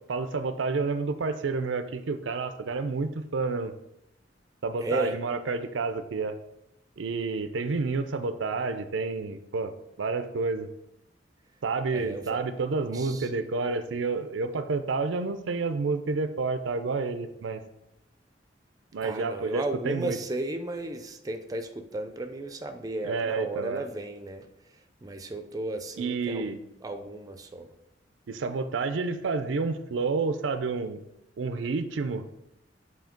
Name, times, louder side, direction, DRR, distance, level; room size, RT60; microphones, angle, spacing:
voice 1, 0.0-3.7 4.6-6.4 7.0-9.7 10.0-10.7 11.6-17.6 18.9-20.2 23.0-23.9 26.0-26.6 28.3-31.0 31.4-32.3, right 4 dB, 90° right, 10 dB, 0.5 m, -29 dB
voice 2, 4.8-5.2 11.9-12.4 12.9-13.3 19.0-24.5 25.0-26.5 26.8-27.7, right 2 dB, 20° right, 7 dB, 0.4 m, -34 dB
7.8 x 2.8 x 5.1 m, 0.85 s
head